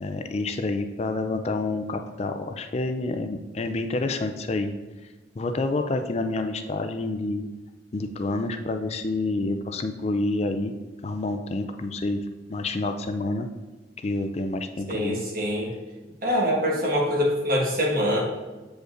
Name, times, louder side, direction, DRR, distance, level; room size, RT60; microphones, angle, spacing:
voice 1, 0.0-4.7 5.4-7.4 7.9-10.7 11.0-12.2 12.5-13.5 14.0-15.3, left 2 dB, 35° left, 7 dB, 0.4 m, -28 dB
voice 2, 14.9-15.7 16.2-18.2, equal, 55° right, -2 dB, 1.4 m, -24 dB
7.9 x 5.0 x 2.5 m, 1.2 s
head